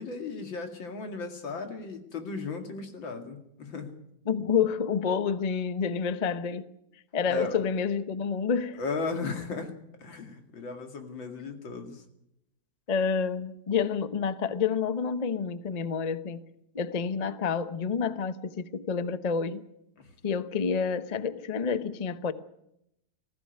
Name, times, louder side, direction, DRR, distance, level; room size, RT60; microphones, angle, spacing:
voice 1, 0.0-3.9 7.3-7.6 8.8-9.7 10.0-12.0 20.0-20.1, left 4 dB, 90° left, 3.0 m, -36 dB
voice 2, 4.3-6.7 7.1-8.8 12.9-16.4 16.7-19.6 20.2-22.3, left 6 dB, 35° left, 0.6 m, -29 dB
19.5 x 15.0 x 9.3 m
omnidirectional pair, 2.0 m